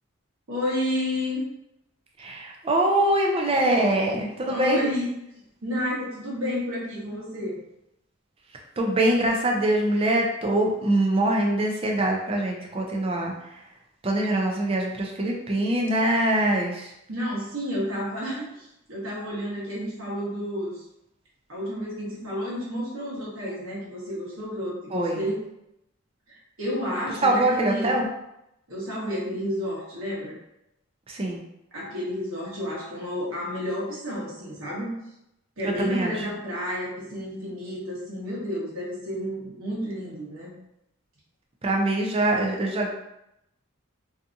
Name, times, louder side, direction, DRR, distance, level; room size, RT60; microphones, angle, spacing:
voice 1, 0.5-1.4 4.4-5.1 5.6-7.6 17.1-20.8 21.5-25.4 26.3-27.9 28.7-30.3 31.7-34.9 35.6-40.5, equal, 65° right, -6 dB, 1.0 m, -31 dB
voice 2, 2.2-4.8 8.8-13.6 14.0-16.9 24.9-25.3 27.2-28.1 31.1-31.4 35.6-36.2 41.6-42.9, right 1 dB, 25° right, 1 dB, 0.4 m, -23 dB
2.7 x 2.4 x 2.5 m, 0.84 s
head